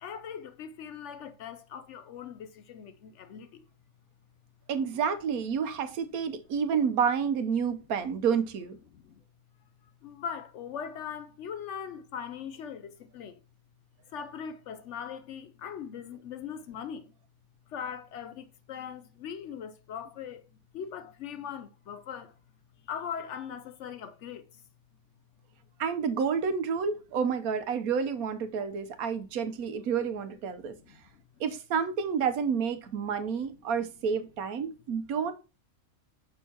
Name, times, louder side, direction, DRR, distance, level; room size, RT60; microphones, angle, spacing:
voice 1, 0.0-3.6 4.8-4.9 8.9-9.2 10.0-13.4 14.1-17.1 17.7-20.4 20.7-22.3 22.8-24.6 30.9-31.2, left 7 dB, 65° left, 0.8 m, -40 dB
voice 2, 4.7-8.8 25.8-30.7 31.4-35.3, right 6 dB, 85° right, 1.2 m, -29 dB
6.4 x 6.3 x 2.8 m
omnidirectional pair, 1.5 m